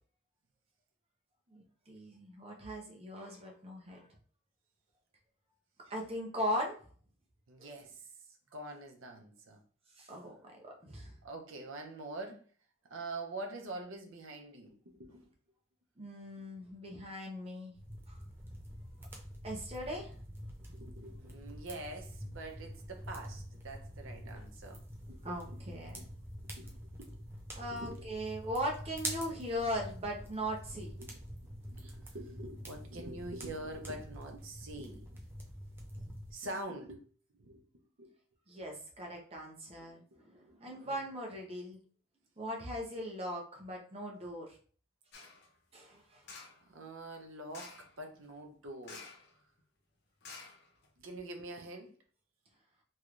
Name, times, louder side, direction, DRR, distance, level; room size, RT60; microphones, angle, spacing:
voice 1, 1.5-4.1 5.9-6.8 7.6-7.7 10.0-11.1 16.0-17.7 18.1-18.2 19.4-20.1 25.2-26.1 27.5-31.0 38.5-41.8 42.4-44.6 45.7-46.2, equal, 30° right, 0.8 m, -39 dB
voice 2, 7.5-8.0 8.5-9.6 11.2-12.4 12.9-15.2 20.7-24.8 25.1-25.6 25.9-26.1 26.6-26.7 27.0-27.3 27.6-28.2 31.0-31.1 31.6-35.1 36.3-37.1 37.4-37.6 38.0-38.1 39.8-39.9 40.5-40.6 40.9-41.0 45.2-45.3 46.7-49.1 51.0-51.9, right 2 dB, 85° right, 0.7 m, -45 dB
sound 1, 17.7-36.3, equal, 10° right, 0.4 m, -46 dB
sound 2, 45.1-45.5 46.2-46.7 47.5-47.9 48.8-49.3 49.6-49.7 50.2-51.1 51.5-51.6, left 4 dB, 55° left, 0.7 m, -50 dB
3.1 x 3.1 x 2.5 m
head